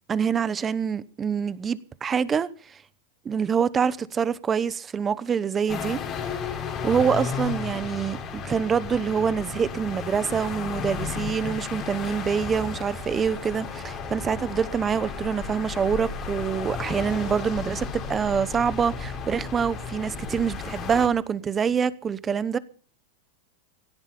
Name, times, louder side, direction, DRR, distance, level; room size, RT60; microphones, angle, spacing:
voice 1, 0.1-2.8 3.2-6.0 6.8-22.6, right 7 dB, 20° right, 0.9 m, -26 dB
sound 1, 5.7-21.1, left 6 dB, 30° left, 3.3 m, -33 dB
17.0 x 14.5 x 5.3 m
supercardioid pair, 145°, 0 cm